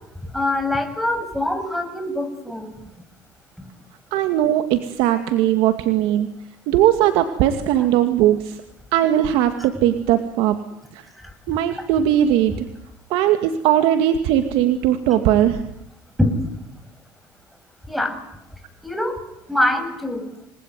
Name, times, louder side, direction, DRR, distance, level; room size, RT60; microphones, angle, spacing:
voice 1, 0.3-2.7 3.6-3.7 11.2-11.8 16.2-16.7 17.9-18.2 18.8-19.2 19.5-20.2, left 1 dB, ahead, 8 dB, 7.3 m, -24 dB
voice 2, 4.1-6.3 6.7-8.6 8.9-10.6 10.9-11.1 11.5-12.7 13.1-15.6, right 11 dB, 80° right, 8 dB, 2.3 m, -19 dB
28.5 x 20.0 x 9.5 m, 0.83 s
cardioid pair, 110°, 9 cm